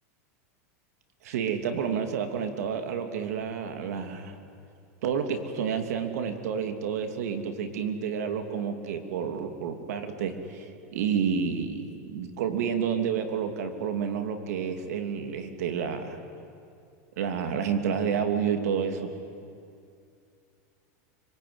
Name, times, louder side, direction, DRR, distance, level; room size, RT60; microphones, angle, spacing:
voice 1, 1.2-4.4 5.0-16.2 17.2-19.2, right 7 dB, 80° right, 7 dB, 2.8 m, -30 dB
25.5 x 23.5 x 9.6 m, 2.4 s
supercardioid pair, 150°, 8 cm